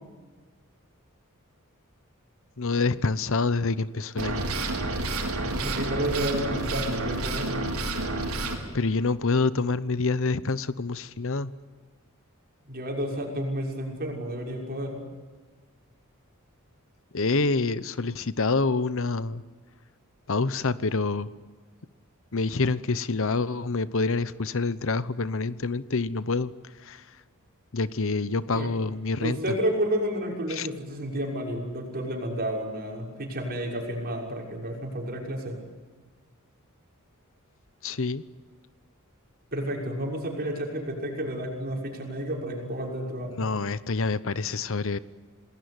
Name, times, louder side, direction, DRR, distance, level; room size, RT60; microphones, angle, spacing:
voice 1, 2.6-4.5 8.7-11.5 17.1-19.4 20.3-21.3 22.3-26.5 26.8-27.1 27.7-29.4 30.5-30.7 37.8-38.2 43.4-45.0, left 3 dB, 65° left, 16 dB, 0.9 m, -27 dB
sound 1, 4.2-8.6, right 2 dB, 85° right, 4.9 m, -29 dB
voice 2, 5.6-7.6 12.7-15.0 28.5-28.7 29.2-35.6 39.5-43.5, right 1 dB, 45° right, 1 dB, 6.3 m, -31 dB
28.0 x 20.0 x 9.7 m, 1.5 s
head